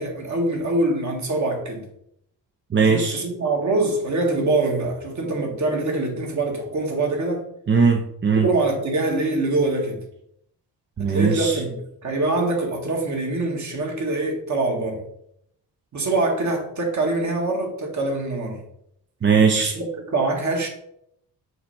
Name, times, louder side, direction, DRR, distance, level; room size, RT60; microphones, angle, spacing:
voice 1, 0.0-1.9 2.8-7.4 8.4-10.0 11.1-11.8 12.0-15.0 15.9-18.6 19.6-20.7, right 2 dB, 45° right, 1 dB, 1.8 m, -24 dB
voice 2, 2.7-3.2 7.7-8.5 11.0-11.6 19.2-19.8, right 5 dB, 30° right, 4 dB, 0.6 m, -19 dB
6.5 x 3.3 x 5.5 m, 0.74 s
cardioid pair, 125°, 40 cm